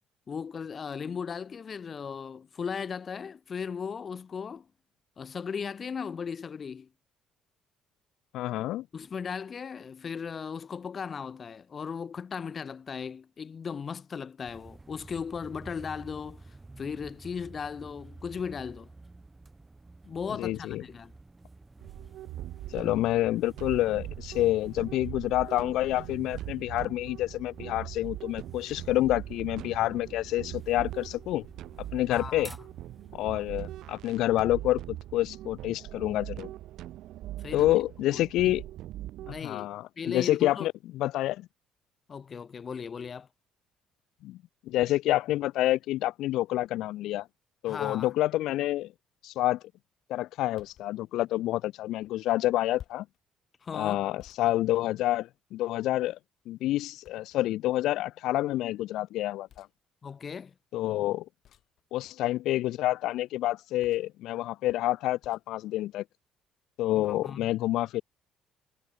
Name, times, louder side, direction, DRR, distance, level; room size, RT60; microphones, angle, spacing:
voice 1, 0.3-4.7 5.2-6.9 8.9-18.9 20.0-21.1 32.1-32.6 37.4-37.7 38.1-38.6 39.2-39.7 40.0-40.7 42.1-43.3 47.7-48.1 53.6-54.0 60.0-60.5 66.9-67.5, left 6 dB, 30° left, 1.2 m, -37 dB
voice 2, 8.3-8.9 20.4-20.8 22.7-31.5 31.9-32.5 33.1-36.5 37.5-38.6 39.4-41.5 44.2-44.4 44.7-47.3 47.6-48.9 49.2-49.6 50.1-53.1 53.7-56.2 56.5-59.7 60.7-61.2 61.9-66.0 66.8-68.0, left 15 dB, 75° left, 0.3 m, -28 dB
sound 1, 14.4-33.9, right 2 dB, 10° right, 1.4 m, -51 dB
sound 2, 21.8-39.4, right 14 dB, 70° right, 1.1 m, -41 dB
sound 3, 50.6-50.9 52.8-53.2 54.2-55.4 57.0-57.6 59.5-59.7 61.4-61.8 63.8-64.2 65.2-65.5, left 10 dB, 50° left, 2.8 m, -53 dB
cardioid pair, 155°, 0 cm